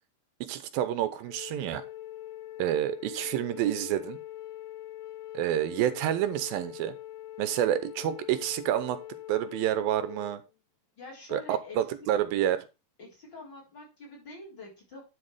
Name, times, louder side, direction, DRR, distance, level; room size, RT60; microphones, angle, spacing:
voice 1, 0.4-1.8 2.6-4.2 5.3-7.0 7.4-9.0 9.3-10.4 11.3-12.6, right 11 dB, 85° right, 12 dB, 2.6 m, -28 dB
Wind instrument woodwind instrument, 1.2-10.4, left 13 dB, 85° left, 1.6 m, -43 dB
voice 2, 11.0-11.8 13.0-15.0, left 3 dB, 30° left, -4 dB, 4.4 m, -45 dB
11.0 x 4.6 x 4.9 m, 0.28 s
omnidirectional pair, 4.2 m